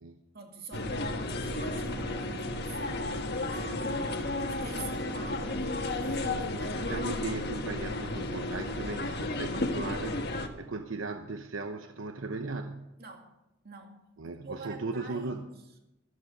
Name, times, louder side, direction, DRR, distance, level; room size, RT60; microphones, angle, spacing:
voice 1, 0.3-6.8 13.0-13.3 13.6-14.0 14.2-15.5, right 3 dB, 55° right, 3 dB, 2.4 m, -47 dB
sound 1, 0.7-10.5, left 2 dB, 55° left, 1.5 m, -33 dB
voice 2, 6.8-12.9 14.2-15.5, right 3 dB, 85° right, 7 dB, 0.8 m, -37 dB
14.0 x 13.0 x 5.4 m, 0.95 s
head